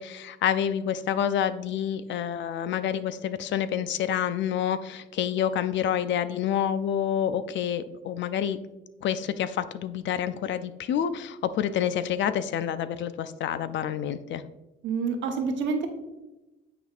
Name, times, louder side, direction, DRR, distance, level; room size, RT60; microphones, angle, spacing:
voice 1, 0.0-8.6 9.0-14.4, left 9 dB, 70° left, 13 dB, 0.4 m, -28 dB
voice 2, 14.8-15.9, right 5 dB, 70° right, 4 dB, 1.0 m, -27 dB
9.1 x 4.3 x 2.4 m, 1.0 s
cardioid pair, 90°, 20 cm